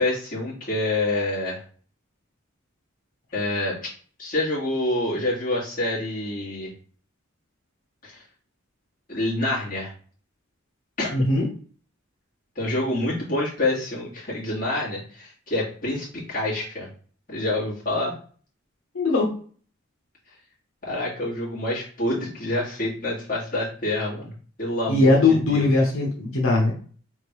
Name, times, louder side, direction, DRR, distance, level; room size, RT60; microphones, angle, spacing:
voice 1, 0.0-1.6 3.3-3.8 4.2-6.7 8.0-8.2 9.1-9.9 11.0-11.1 12.6-16.9 17.3-18.1 20.8-24.3 24.6-25.7, left 1 dB, 40° left, -6 dB, 1.9 m, -27 dB
voice 2, 11.1-11.5 18.9-19.3 24.9-26.7, left 2 dB, 85° left, -1 dB, 0.9 m, -20 dB
3.7 x 2.6 x 4.6 m, 0.44 s
head